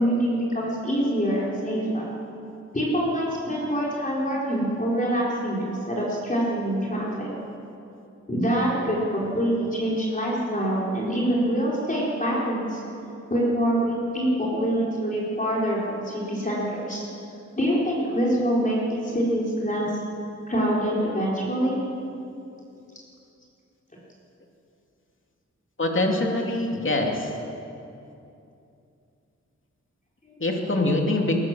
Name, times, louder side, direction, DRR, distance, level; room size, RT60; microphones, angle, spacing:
voice 1, 0.0-2.1 2.7-7.3 8.3-12.8 13.3-17.0 17.6-18.8 19.0-19.9 20.5-21.8 30.2-30.3, equal, 25° left, -5 dB, 4.5 m, -25 dB
voice 2, 25.8-27.3 30.4-31.4, left 2 dB, 45° left, 1 dB, 2.7 m, -24 dB
22.0 x 18.0 x 7.5 m, 2.7 s
wide cardioid pair, 105°, 29 cm